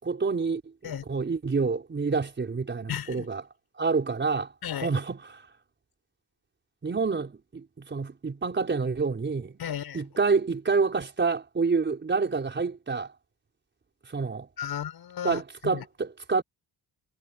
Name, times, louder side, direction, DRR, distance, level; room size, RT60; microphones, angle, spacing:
voice 1, 0.0-3.4 3.8-4.5 4.8-5.5 6.8-9.6 9.9-13.1 14.1-14.5 15.2-16.4, right 4 dB, 30° right, 5.1 m, -28 dB
voice 2, 2.9-3.3 4.6-4.9 9.6-10.0 14.6-15.8, left 9 dB, 70° left, 7.8 m, -34 dB
wide cardioid pair, 155°, 39 cm